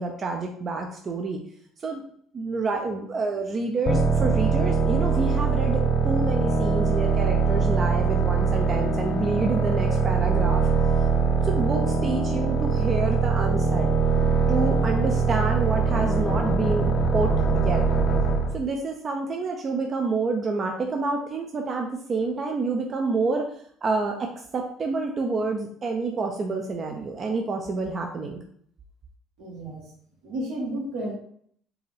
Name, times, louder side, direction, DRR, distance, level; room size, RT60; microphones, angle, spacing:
voice 1, 0.0-1.4 1.8-2.0 2.3-10.7 11.4-13.9 14.5-17.8 18.5-23.5 23.8-24.3 24.5-28.4, right 3 dB, 40° right, 2 dB, 0.6 m, -28 dB
sound 1, 3.9-18.6, right 4 dB, 50° left, 0.7 m, -22 dB
voice 2, 29.4-29.9 30.2-31.1, right 1 dB, 85° right, -3 dB, 1.8 m, -32 dB
4.6 x 2.6 x 3.4 m, 0.62 s
cardioid pair, 100°, 0 cm